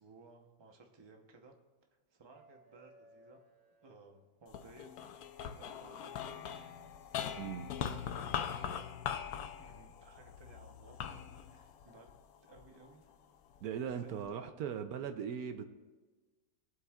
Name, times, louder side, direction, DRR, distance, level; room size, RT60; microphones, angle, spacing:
voice 1, 0.0-1.6 2.1-3.4 3.8-5.1 5.4-6.6 7.3-8.8 9.6-12.1 12.5-13.1 13.8-15.0, right 3 dB, 30° right, 2 dB, 0.4 m, -59 dB
sound 1, 2.3-4.7 6.4-6.5 8.3-8.5, equal, 50° right, 3.1 m, -63 dB
sound 2, 4.5-12.9 13.5-14.3, left 8 dB, 70° left, 0.9 m, -42 dB
voice 2, 7.4-7.7 13.6-15.6, right 8 dB, 75° right, 8 dB, 0.8 m, -39 dB
21.0 x 7.9 x 2.4 m, 1.3 s
omnidirectional pair, 2.1 m